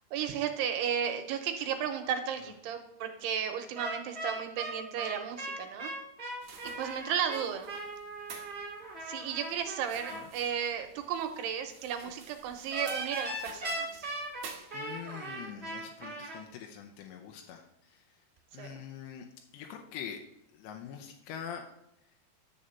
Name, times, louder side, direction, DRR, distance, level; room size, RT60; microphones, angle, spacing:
voice 1, 0.1-5.9 6.6-7.7 9.0-14.1 18.6-18.8, right 8 dB, 80° right, 6 dB, 2.6 m, -34 dB
sound 1, 3.7-10.2 12.7-16.4, right 2 dB, 45° right, 0.8 m, -39 dB
sound 2, 6.4-15.2, right 5 dB, 65° right, 1.7 m, -52 dB
voice 2, 14.7-18.0 18.5-19.3 19.5-20.2 20.5-21.7, left 8 dB, 90° left, 3 dB, 2.9 m, -44 dB
10.5 x 4.2 x 6.9 m, 0.81 s
omnidirectional pair, 5.0 m